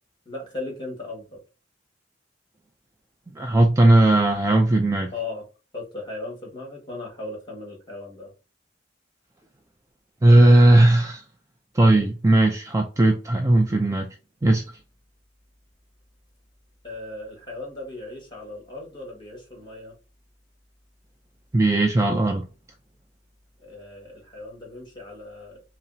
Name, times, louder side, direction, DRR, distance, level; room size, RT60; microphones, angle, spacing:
voice 1, 0.2-1.4 5.1-5.5 5.7-8.3 16.8-19.9 23.6-25.6, left 2 dB, 25° left, 1.5 m, -37 dB
voice 2, 3.3-5.1 10.2-11.2 11.7-14.1 14.4-14.6 21.5-22.4, right 2 dB, 15° right, 0.4 m, -17 dB
5.5 x 2.0 x 2.6 m
head